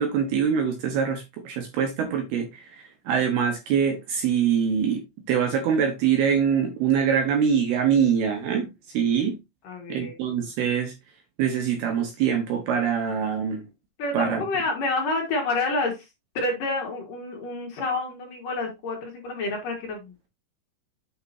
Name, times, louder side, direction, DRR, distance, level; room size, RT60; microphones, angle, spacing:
voice 1, 0.0-8.7 8.9-9.4 9.9-10.9 11.4-13.6 14.1-14.4, right 7 dB, 70° right, 2.7 m, -24 dB
voice 2, 9.6-10.1 14.0-16.1 16.3-20.3, left 2 dB, 50° left, 3.3 m, -28 dB
8.7 x 6.4 x 2.7 m
omnidirectional pair, 5.5 m